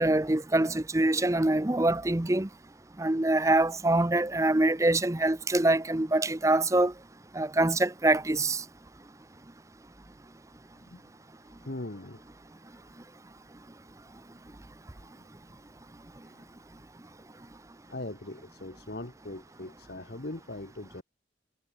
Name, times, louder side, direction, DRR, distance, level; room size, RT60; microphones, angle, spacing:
voice 1, 0.0-2.5 3.0-6.9 7.3-8.6, right 2 dB, 15° right, 0.6 m, -25 dB
voice 2, 11.5-12.2 12.7-12.8 15.0-15.3 16.2-16.5 17.9-21.0, left 2 dB, 55° left, 1.4 m, -41 dB
head